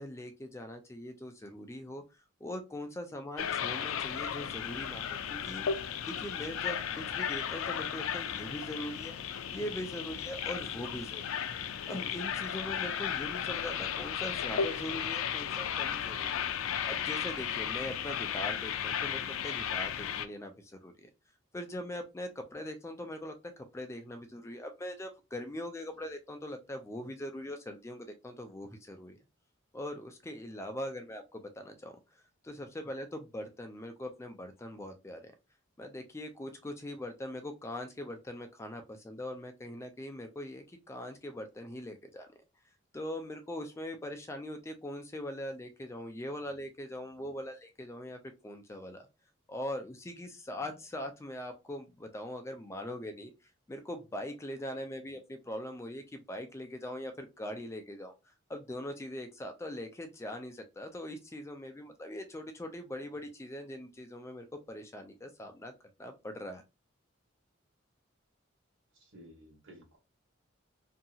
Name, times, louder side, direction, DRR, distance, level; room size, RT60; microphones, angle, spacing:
voice 1, 0.0-9.1 9.5-16.5 16.8-21.1 21.5-23.4 23.7-29.2 29.7-35.3 35.8-42.3 42.9-49.1 49.5-53.3 53.7-65.7 66.0-66.6, left 1 dB, 15° left, 6 dB, 0.3 m, -41 dB
sound 1, 3.4-20.3, left 8 dB, 90° left, 0.3 m, -35 dB
voice 2, 68.9-70.0, equal, 75° right, 1 dB, 1.1 m, -55 dB
2.7 x 2.7 x 2.3 m, 0.26 s
head